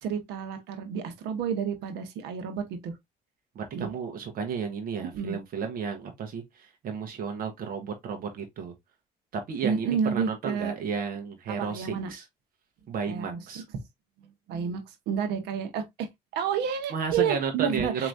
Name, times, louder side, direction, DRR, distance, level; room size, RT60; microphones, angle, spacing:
voice 1, 0.0-3.0 3.7-3.9 5.1-5.4 9.6-10.7 11.6-12.1 13.1-13.6 14.2-16.1 16.3-18.1, right 7 dB, 85° right, 1.1 m, -30 dB
voice 2, 3.5-8.7 9.3-12.2 12.9-13.6 16.9-18.1, right 6 dB, 60° right, 1.0 m, -33 dB
4.5 x 3.0 x 2.5 m
cardioid pair, 110°, 17 cm